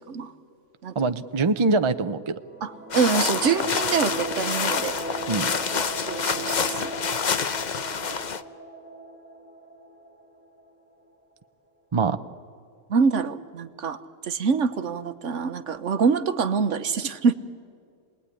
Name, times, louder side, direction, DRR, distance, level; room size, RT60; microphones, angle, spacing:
voice 1, 0.9-2.3 5.3-5.5 11.9-12.2, right 3 dB, 30° right, 10 dB, 0.6 m, -23 dB
sound 1, 2.3-10.9, right 3 dB, 5° right, 2.9 m, -38 dB
voice 2, 2.6-5.0 6.1-6.9 12.9-14.0 14.2-17.3, right 5 dB, 65° right, 10 dB, 1.3 m, -25 dB
sound 2, 2.9-8.4, left 6 dB, 40° left, 0.7 m, -27 dB
28.0 x 20.0 x 10.0 m, 2.3 s
omnidirectional pair, 1.4 m